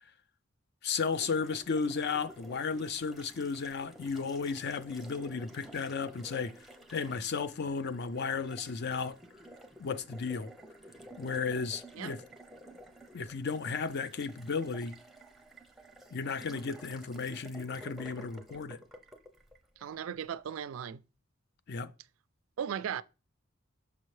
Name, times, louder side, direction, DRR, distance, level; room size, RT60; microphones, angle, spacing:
voice 1, 0.8-6.5 6.9-9.2 9.8-10.5 11.2-12.2 13.1-15.0 16.1-18.8 21.7-21.9, left 5 dB, 55° left, 0.5 m, -34 dB
Water tap faucet, 1.1-20.3, right 1 dB, ahead, 0.6 m, -52 dB
voice 2, 19.8-21.0 22.6-23.0, right 8 dB, 85° right, 0.4 m, -36 dB
6.2 x 5.4 x 3.2 m
head